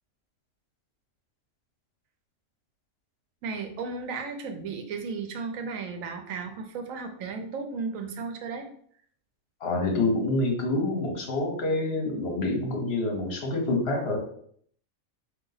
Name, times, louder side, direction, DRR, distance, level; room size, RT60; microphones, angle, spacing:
voice 1, 3.4-8.7, right 4 dB, 85° right, 5 dB, 1.1 m, -34 dB
voice 2, 9.6-14.2, left 2 dB, 55° left, 1 dB, 1.1 m, -27 dB
3.8 x 2.7 x 3.9 m, 0.62 s
omnidirectional pair, 1.4 m